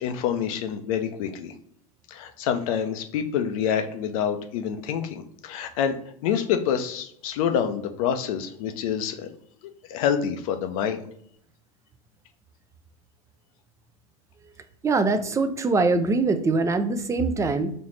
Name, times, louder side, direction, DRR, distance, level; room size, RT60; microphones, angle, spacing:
voice 1, 0.0-1.5 2.1-5.9 6.2-9.3 9.9-11.0, left 8 dB, 60° left, 7 dB, 0.6 m, -27 dB
voice 2, 14.8-17.7, right 3 dB, 15° right, 10 dB, 0.4 m, -23 dB
4.2 x 2.8 x 3.2 m, 0.70 s
hypercardioid pair, 90°, 20 cm